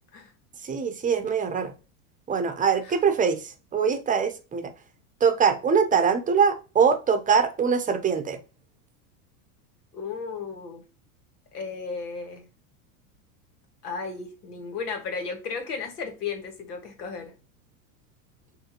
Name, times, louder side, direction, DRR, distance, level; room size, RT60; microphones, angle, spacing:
voice 1, 0.6-1.7 2.3-4.7 5.2-8.4, right 6 dB, 15° right, 0.7 m, -23 dB
voice 2, 9.9-10.8 11.5-12.5 13.8-17.3, left 5 dB, 85° left, 1.6 m, -34 dB
6.3 x 2.7 x 2.9 m
hypercardioid pair, 110°, 45 cm